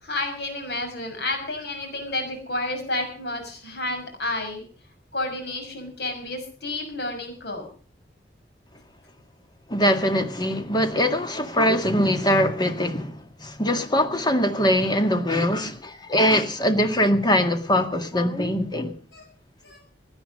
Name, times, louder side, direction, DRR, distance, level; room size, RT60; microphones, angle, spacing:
voice 1, 0.0-4.6 5.1-7.7 19.1-19.3 19.6-19.8, left 2 dB, 65° left, 6.3 m, -30 dB
voice 2, 9.7-18.9, equal, 25° left, 2.0 m, -22 dB
17.5 x 10.5 x 6.5 m
head